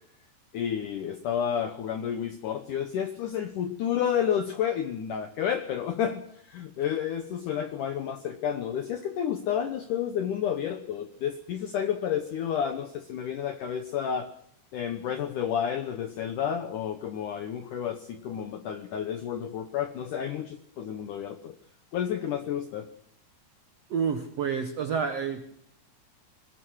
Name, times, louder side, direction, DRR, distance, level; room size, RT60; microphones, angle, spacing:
voice 1, 0.5-14.3 14.7-21.6 21.9-22.9, left 9 dB, 75° left, 8 dB, 1.9 m, -30 dB
voice 2, 23.9-25.5, right 6 dB, 85° right, 7 dB, 1.4 m, -29 dB
21.5 x 20.5 x 6.4 m, 0.69 s
omnidirectional pair, 5.0 m